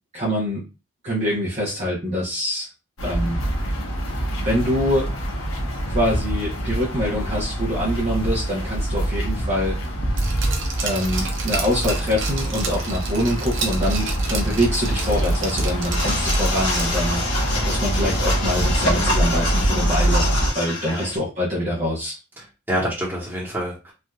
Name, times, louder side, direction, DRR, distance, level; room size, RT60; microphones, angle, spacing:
voice 1, 0.1-0.6 1.0-2.7 3.0-3.4 4.4-5.1 5.9-9.8 10.8-22.2, equal, 30° right, -6 dB, 0.9 m, -25 dB
sound 1, 3.0-20.5, right 1 dB, 85° left, 1.0 m, -24 dB
Glass, 10.2-17.1 17.4-17.5, right 5 dB, 60° right, 0.7 m, -31 dB
sound 2, 15.9-21.2, left 2 dB, 55° left, 1.1 m, -27 dB
voice 2, 22.4-23.9, equal, 10° right, -5 dB, 1.2 m, -28 dB
3.4 x 2.7 x 2.3 m, 0.30 s
head